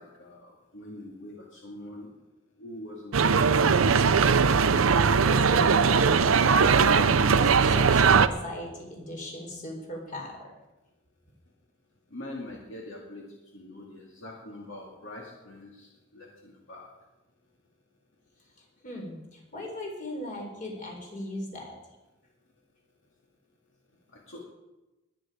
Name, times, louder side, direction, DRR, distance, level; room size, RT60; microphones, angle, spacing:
voice 1, 0.0-2.1 2.6-3.7 12.1-16.9 24.1-24.4, left 1 dB, 70° left, -1 dB, 2.1 m, -44 dB
sound 1, 3.1-8.3, right 5 dB, 80° right, 0.6 m, -20 dB
voice 2, 4.8-10.4 18.8-21.7, left 1 dB, 40° left, 0 dB, 4.2 m, -38 dB
21.0 x 9.3 x 5.0 m, 1.0 s
head